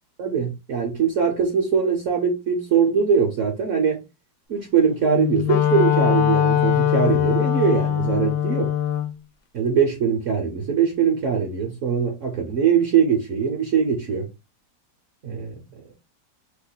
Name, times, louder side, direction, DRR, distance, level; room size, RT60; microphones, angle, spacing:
voice 1, 0.2-4.0 4.5-8.7 9.5-14.3 15.2-15.6, right 6 dB, 60° right, 0.9 m, -22 dB
Wind instrument woodwind instrument, 5.0-9.1, left 11 dB, 75° left, 1.1 m, -21 dB
2.9 x 2.2 x 3.8 m
omnidirectional pair, 1.8 m